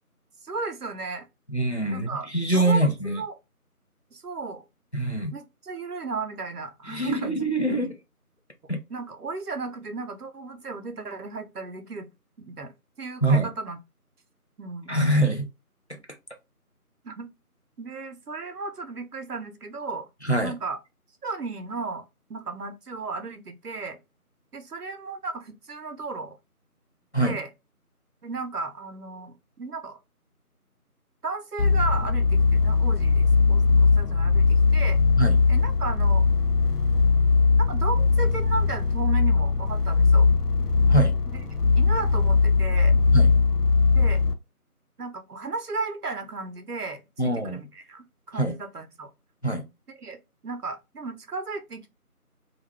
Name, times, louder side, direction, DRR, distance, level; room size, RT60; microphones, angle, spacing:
voice 1, 0.4-1.3 1.9-2.3 2.5-3.3 4.1-4.6 5.3-7.3 7.7-7.9 8.9-12.1 12.4-12.7 13.0-13.8 14.6-15.0 17.0-17.3 17.8-20.1 20.4-20.8 21.2-22.0 22.3-24.0 24.5-26.4 27.2-27.5 28.2-30.0 31.2-35.0 35.5-36.2 37.7-40.3 41.3-41.5 41.8-42.9 43.9-44.2 45.0-49.1 49.9-50.2 50.4-51.9, right 3 dB, 80° right, 0.8 m, -35 dB
voice 2, 1.5-3.2 4.9-5.3 6.9-7.9 8.7-8.8 13.2-13.5 14.9-15.5 20.2-20.5 27.1-27.4 35.2-35.3 40.9-41.1 43.1-43.3 47.2-47.6 48.4-48.6 49.4-49.6, right 1 dB, 50° left, 0.5 m, -24 dB
sound 1, 31.6-44.3, left 4 dB, 85° left, 0.7 m, -20 dB
2.5 x 2.3 x 3.2 m
figure-of-eight pair, 175°, 46 cm